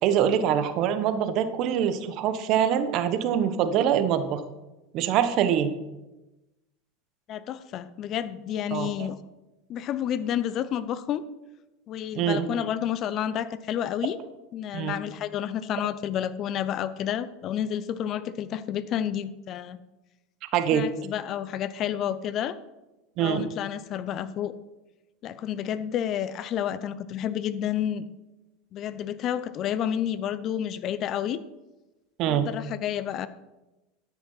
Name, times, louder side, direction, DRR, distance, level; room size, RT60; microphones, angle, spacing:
voice 1, 0.0-4.4 4.9-5.7 8.7-8.9 12.2-12.5 14.7-15.0 20.5-20.9 23.2-23.4 32.2-32.5, right 9 dB, 50° right, 10 dB, 1.1 m, -24 dB
voice 2, 7.3-9.2 9.7-11.2 11.9-14.2 14.5-19.8 20.7-22.6 23.2-24.5 25.2-28.0 28.7-31.4 32.3-33.3, left 10 dB, 45° left, 15 dB, 0.6 m, -30 dB
12.5 x 6.0 x 5.6 m, 1.0 s
hypercardioid pair, 105°, 0 cm